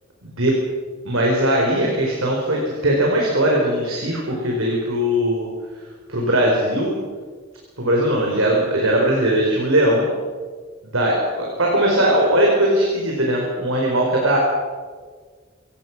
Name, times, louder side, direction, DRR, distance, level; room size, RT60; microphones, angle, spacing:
voice 1, 0.2-0.6 1.0-5.5 6.1-6.9 7.8-10.1 10.8-14.4, right 1 dB, 90° right, -2 dB, 4.7 m, -19 dB
25.5 x 17.5 x 6.1 m, 1.5 s
head